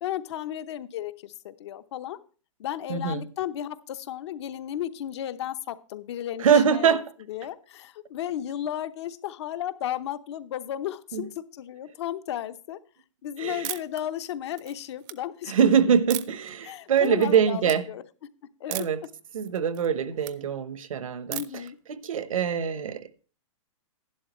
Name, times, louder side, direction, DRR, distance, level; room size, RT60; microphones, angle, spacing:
voice 1, 0.0-2.2 2.6-6.9 7.3-12.8 13.2-15.7 16.6-18.0 18.6-18.9 21.3-21.8, left 11 dB, 55° left, 0.9 m, -34 dB
voice 2, 2.9-3.2 6.4-7.0 11.1-11.3 13.4-13.7 15.5-17.9 18.7-19.0 19.3-21.6 21.9-23.3, right 7 dB, 85° right, 1.1 m, -24 dB
sound 1, 13.6-14.0 14.5-15.1 16.1-16.5 17.0-17.4 17.6-17.8 18.7-19.1 19.4-20.4 21.3-21.7, right 16 dB, 35° right, 0.6 m, -36 dB
12.0 x 11.0 x 3.1 m
hypercardioid pair, 155°, 17 cm